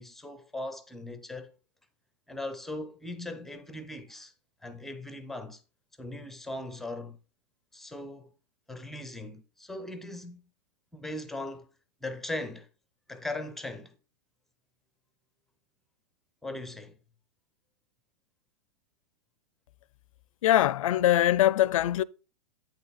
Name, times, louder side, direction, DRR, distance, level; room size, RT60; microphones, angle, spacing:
voice 1, 0.0-1.6 2.3-4.3 4.6-5.6 6.0-7.2 7.7-8.3 8.7-10.5 10.9-11.7 12.0-12.7 13.1-14.0 16.4-17.0, left 2 dB, ahead, 0.5 m, -39 dB
voice 2, 20.4-22.0, left 13 dB, 75° left, 0.4 m, -22 dB
8.6 x 5.5 x 4.1 m
supercardioid pair, 165°, 17 cm